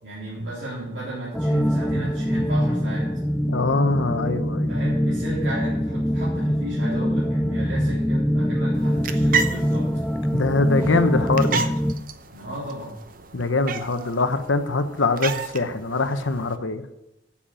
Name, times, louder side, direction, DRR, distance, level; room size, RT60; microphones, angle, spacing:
voice 1, 0.0-3.2 4.7-9.9 12.3-13.0, right 1 dB, 60° right, -9 dB, 3.6 m, -34 dB
sound 1, 1.3-11.9, equal, 5° left, 0.3 m, -24 dB
voice 2, 3.5-4.7 10.3-11.7 13.3-16.8, left 3 dB, 75° left, 10 dB, 0.9 m, -23 dB
sound 2, 8.7-16.6, right 5 dB, 45° right, 0.8 m, -32 dB
8.8 x 7.3 x 8.7 m, 0.92 s
head